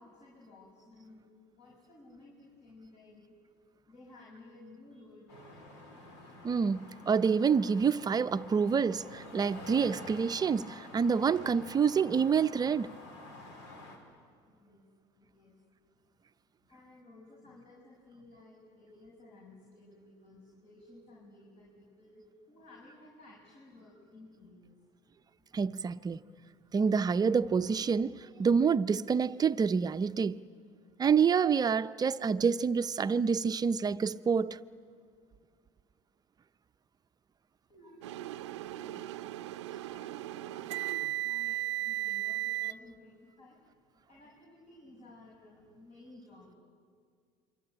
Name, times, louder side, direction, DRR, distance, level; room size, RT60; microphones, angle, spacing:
voice 1, 0.0-3.3 3.9-5.6 6.2-6.3 14.5-14.8 15.2-15.6 16.7-24.8 26.1-26.2 37.7-38.3 38.5-43.6 44.1-46.6, left 2 dB, 50° left, 6.3 m, -56 dB
sound 1, 5.3-14.0, left 2 dB, 85° left, 4.8 m, -49 dB
voice 2, 6.4-13.0 25.5-26.2 26.7-30.4 31.0-34.6, right 6 dB, 25° right, 0.7 m, -27 dB
sound 2, 38.0-42.7, right 15 dB, 90° right, 0.6 m, -36 dB
27.0 x 24.0 x 8.9 m
supercardioid pair, 90°, 15 cm